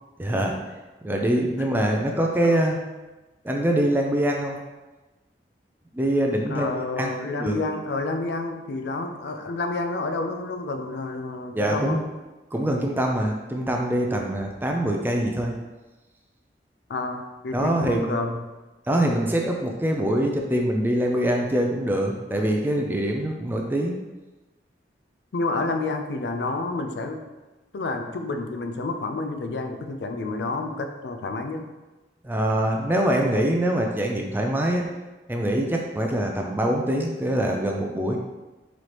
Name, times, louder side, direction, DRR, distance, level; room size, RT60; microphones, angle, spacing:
voice 1, 0.2-0.6 1.0-2.8 3.4-4.6 5.9-7.6 11.5-12.0 12.5-15.5 17.5-18.2 18.9-24.0 32.2-34.9 35.3-38.2, right 1 dB, 10° right, 1 dB, 0.3 m, -24 dB
voice 2, 2.2-2.6 6.5-12.1 16.9-18.4 25.3-27.2 27.7-31.7, left 3 dB, 70° left, 6 dB, 0.4 m, -29 dB
4.1 x 3.1 x 3.0 m, 1.1 s
head